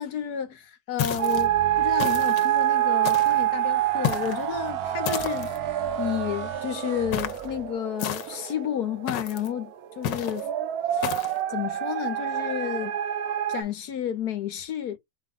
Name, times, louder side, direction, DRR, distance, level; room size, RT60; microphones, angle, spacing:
voice 1, 0.0-1.5 1.8-10.5 10.9-11.1 11.5-13.0 13.5-15.0, left 9 dB, 65° left, 1.4 m, -31 dB
sound 1, 1.0-1.5 2.0-2.5 3.0-3.5 4.0-4.4 5.1-5.6 7.1-7.5 8.0-8.5 9.1-9.5 10.0-10.4 11.0-11.4, left 9 dB, 80° left, 1.4 m, -31 dB
sound 2, 1.2-13.6, right 12 dB, 65° right, 1.1 m, -27 dB
sound 3, 1.3-7.7, right 7 dB, 80° right, 1.6 m, -41 dB
5.2 x 2.3 x 3.7 m
omnidirectional pair, 1.9 m